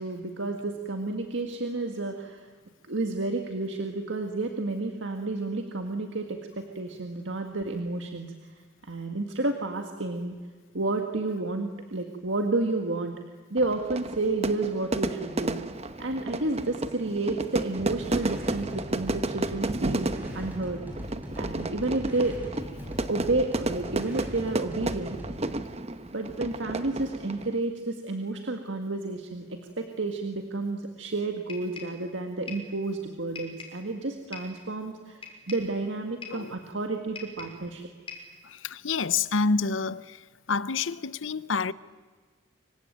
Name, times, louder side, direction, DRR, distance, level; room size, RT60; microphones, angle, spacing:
voice 1, 0.0-2.5 2.8-8.3 8.8-10.4 10.7-13.1 13.5-15.6 16.0-20.8 21.4-22.4 23.1-25.2 26.1-37.8, right 2 dB, 70° right, 1.9 m, -31 dB
Fire / Fireworks, 13.6-27.6, right 2 dB, 35° right, 1.1 m, -32 dB
sound 1, 17.7-25.4, equal, 10° right, 6.0 m, -41 dB
sound 2, 31.5-32.0 32.5-32.7 33.4-33.8 34.3-34.6 35.2-35.7 36.2-36.5 37.2-37.6 38.1-38.4, left 4 dB, 30° left, 5.6 m, -42 dB
voice 2, 38.4-40.2 40.5-41.7, left 4 dB, 80° left, 0.8 m, -28 dB
26.0 x 24.0 x 9.2 m
head